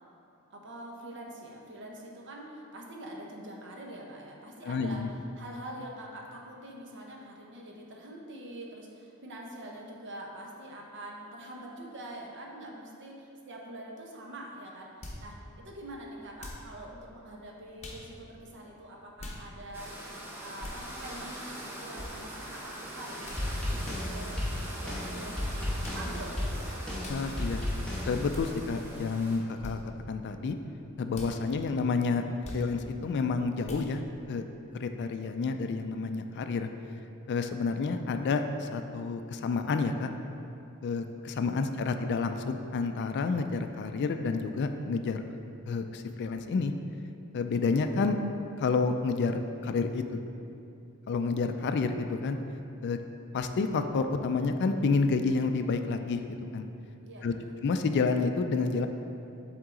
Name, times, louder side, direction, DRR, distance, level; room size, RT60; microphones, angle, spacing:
voice 1, 0.5-5.1 5.4-19.9 20.4-21.5 21.8-26.8 57.0-57.5, right 1 dB, 55° right, -1 dB, 0.9 m, -45 dB
voice 2, 4.6-5.1 27.1-27.6 28.1-29.8 30.1-30.6 31.0-32.2 32.5-34.0 34.3-34.4 34.8-36.7 37.3-40.1 40.8-45.2 45.7-46.7 47.3-48.2 48.6-50.2 51.1-52.4 52.8-53.0 53.3-56.7 57.2-57.3 57.6-58.9, left 4 dB, 50° left, 8 dB, 0.3 m, -29 dB
sound 1, 15.0-15.3 16.4-16.7 17.8-18.0 19.2-19.4 20.6-20.8 22.0-22.1 23.2-23.4 24.5-24.7 25.8-26.1 27.0-27.2 28.3-28.5 29.6-29.8 31.1-31.3 32.4-32.7 33.6-33.9, left 1 dB, 30° left, 0.8 m, -42 dB
sound 2, 19.7-29.4, right 1 dB, 10° right, 0.7 m, -42 dB
sound 3, 23.1-28.2, left 1 dB, 5° left, 1.1 m, -34 dB
7.7 x 3.7 x 3.7 m, 2.7 s
head